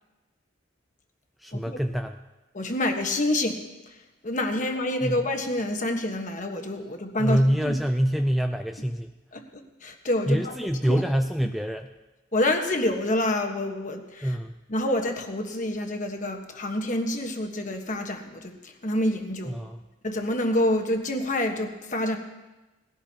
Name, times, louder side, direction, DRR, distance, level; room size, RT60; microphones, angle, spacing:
voice 1, 1.4-2.2 5.0-5.2 7.2-9.1 10.3-11.9 14.2-14.5 19.5-19.8, equal, ahead, 5 dB, 0.3 m, -25 dB
voice 2, 2.5-3.6 4.2-7.7 9.3-10.6 10.8-11.0 12.3-14.4 14.7-19.6 20.0-22.2, left 1 dB, 40° left, 4 dB, 1.3 m, -27 dB
19.5 x 16.0 x 2.9 m, 1.1 s
head